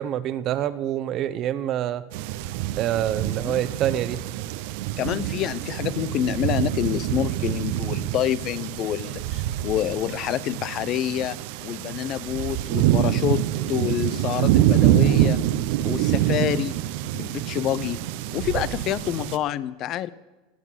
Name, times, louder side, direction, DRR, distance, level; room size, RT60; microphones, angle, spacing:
voice 1, 0.0-2.0 2.8-4.2, right 11 dB, 50° right, 14 dB, 1.1 m, -26 dB
sound 1, 2.1-19.4, right 13 dB, 70° right, 0.8 m, -25 dB
voice 2, 5.0-11.4 11.6-13.4 13.7-15.4 15.8-16.8 17.1-18.0 18.3-20.1, left 11 dB, 50° left, 18 dB, 0.7 m, -27 dB
18.0 x 8.1 x 9.5 m, 1.2 s
hypercardioid pair, 100°, 0 cm